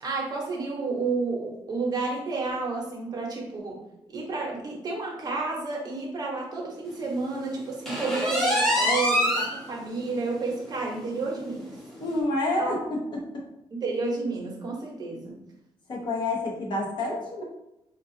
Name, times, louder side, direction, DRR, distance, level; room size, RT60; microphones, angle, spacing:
voice 1, 0.0-3.8 4.1-11.7 12.6-12.7 13.7-15.3, right 3 dB, 40° right, -1 dB, 0.9 m, -31 dB
sound 1, 7.9-9.6 10.0-10.1 10.5-10.6 11.0-11.1 12.1-12.2, left 1 dB, 5° left, 1.0 m, -24 dB
voice 2, 12.0-13.4 15.9-17.4, left 2 dB, 50° left, -1 dB, 0.9 m, -28 dB
4.7 x 2.4 x 2.6 m, 0.89 s
cardioid pair, 155°, 10 cm